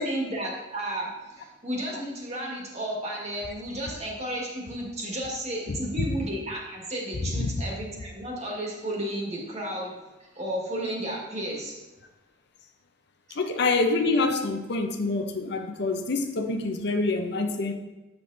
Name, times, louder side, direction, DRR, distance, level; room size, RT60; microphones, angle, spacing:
voice 1, 0.0-9.9 10.3-11.7 13.3-13.4, right 1 dB, 35° right, 1.7 m, -33 dB
voice 2, 13.4-17.7, left 3 dB, 60° left, 0.7 m, -26 dB
7.8 x 6.7 x 2.7 m
head